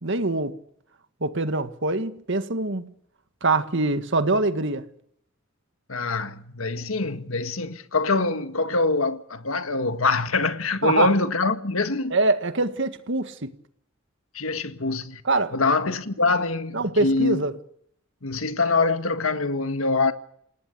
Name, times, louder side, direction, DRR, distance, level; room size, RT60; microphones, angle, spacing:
voice 1, 0.0-0.6 1.2-2.9 3.4-4.9 10.8-11.1 12.1-13.5 15.3-15.5 16.7-17.5, right 2 dB, 60° right, 1.8 m, -24 dB
voice 2, 5.9-12.2 14.3-15.2 15.5-17.4 18.2-20.1, left 3 dB, 75° left, 1.7 m, -24 dB
29.0 x 18.5 x 6.8 m
head